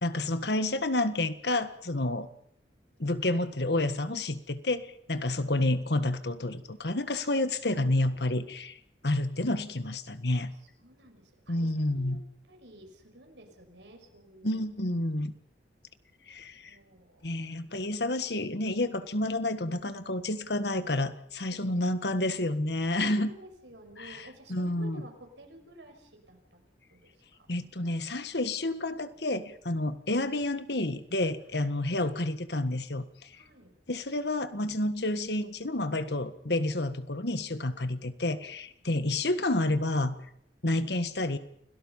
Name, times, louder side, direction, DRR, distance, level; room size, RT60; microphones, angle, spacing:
voice 1, 0.0-2.3 3.0-10.5 11.5-12.2 14.4-15.3 16.3-16.8 17.2-23.3 24.0-24.2 24.5-25.0 27.5-33.3 33.9-40.2 40.6-41.4, left 2 dB, 70° left, 11 dB, 1.6 m, -29 dB
voice 2, 10.3-12.2 12.5-14.7 16.7-17.3 21.5-21.6 22.8-26.6 26.9-27.5 27.8-28.0 33.3-33.7, right 1 dB, 85° right, 4 dB, 5.7 m, -53 dB
29.0 x 18.0 x 5.6 m, 0.68 s
head